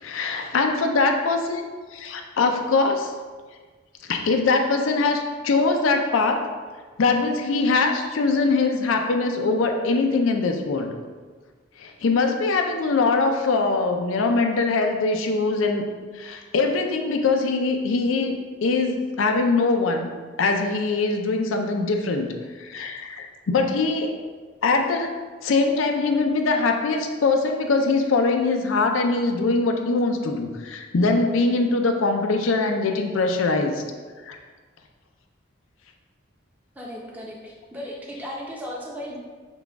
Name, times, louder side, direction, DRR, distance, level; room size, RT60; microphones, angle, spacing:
voice 1, 0.0-1.7 1.9-3.1 4.1-6.5 7.0-10.9 11.8-15.9 16.1-18.3 18.6-20.1 20.4-22.3 22.6-24.1 24.6-25.1 25.4-33.8 34.2-34.4, left 3 dB, 80° left, 4 dB, 0.5 m, -22 dB
voice 2, 36.7-39.2, equal, 10° right, -4 dB, 0.6 m, -36 dB
5.9 x 2.3 x 3.4 m, 1.4 s
head